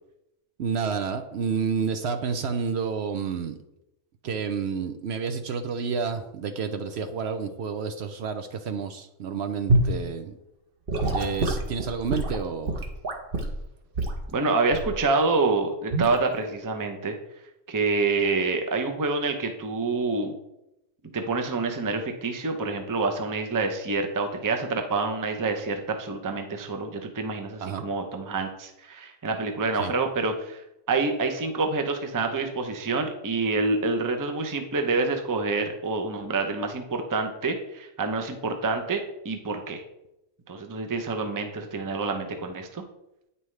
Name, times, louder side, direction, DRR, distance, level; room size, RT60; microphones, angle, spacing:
voice 1, 0.6-3.6 4.2-10.4 11.1-12.8 27.6-27.8 29.8-29.9, right 6 dB, 65° right, 8 dB, 0.8 m, -30 dB
Gurgling / Sink (filling or washing) / Liquid, 9.7-10.0 10.9-13.6 14.0-14.2 14.7-15.0 15.9-16.1, right 1 dB, 50° right, 1.1 m, -25 dB
voice 2, 14.3-17.1 17.7-20.3 21.1-30.6 30.9-39.8 40.5-42.8, right 3 dB, 20° right, 5 dB, 0.5 m, -27 dB
9.0 x 5.5 x 3.2 m, 0.88 s
omnidirectional pair, 1.3 m